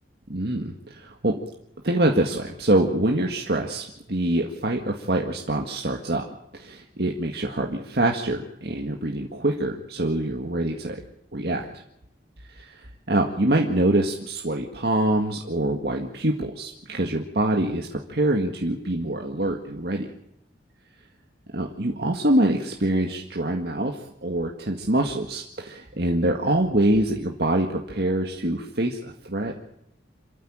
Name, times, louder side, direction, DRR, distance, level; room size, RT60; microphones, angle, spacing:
voice 1, 0.3-1.4 1.8-6.3 6.5-11.0 11.3-11.7 12.5-20.1 21.5-29.5, right 1 dB, 60° right, 1 dB, 1.9 m, -25 dB
27.0 x 14.5 x 8.8 m, 0.79 s
head